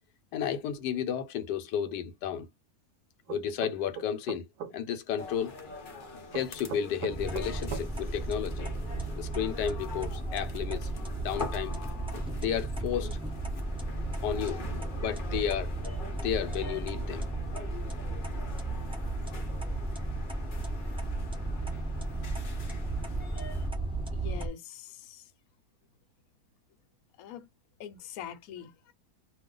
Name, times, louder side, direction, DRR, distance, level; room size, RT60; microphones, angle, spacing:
voice 1, 0.3-2.5 3.3-4.4 4.7-5.6 6.3-8.7 9.2-10.9 11.2-11.8 12.3-13.2 14.2-14.6 14.9-15.7 16.1-17.3, left 9 dB, 90° left, 1.2 m, -32 dB
sound 1, 3.3-4.7 6.3-7.9, right 7 dB, 70° right, 1.0 m, -38 dB
sound 2, 5.2-23.7, left 3 dB, 45° left, 0.6 m, -45 dB
sound 3, 7.1-24.5, right 2 dB, 5° right, 0.4 m, -34 dB
voice 2, 24.1-25.2 27.2-27.5 27.8-28.9, left 9 dB, 70° left, 1.0 m, -43 dB
2.5 x 2.3 x 3.7 m
omnidirectional pair, 1.8 m